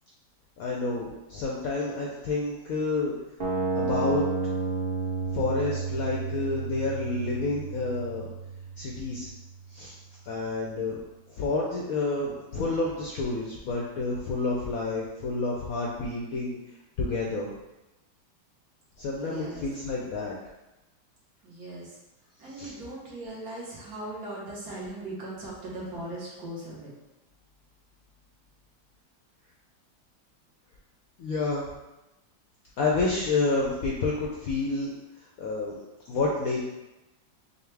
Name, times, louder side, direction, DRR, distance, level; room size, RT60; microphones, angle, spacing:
voice 1, 0.6-3.1 3.7-4.3 5.3-8.3 8.8-9.3 9.7-9.9 10.3-11.0 11.3-16.6 17.0-17.5 19.0-20.3 22.5-22.7 31.2-31.6 32.8-34.9 35.4-35.8 36.1-36.6, left 3 dB, 70° left, -3 dB, 0.8 m, -29 dB
sound 1, 3.4-9.4, right 4 dB, 90° right, 0.4 m, -31 dB
voice 2, 19.2-19.6 21.4-22.0 22.4-26.9, right 1 dB, 55° right, -6 dB, 1.5 m, -39 dB
5.4 x 2.2 x 3.2 m, 0.96 s
omnidirectional pair, 2.0 m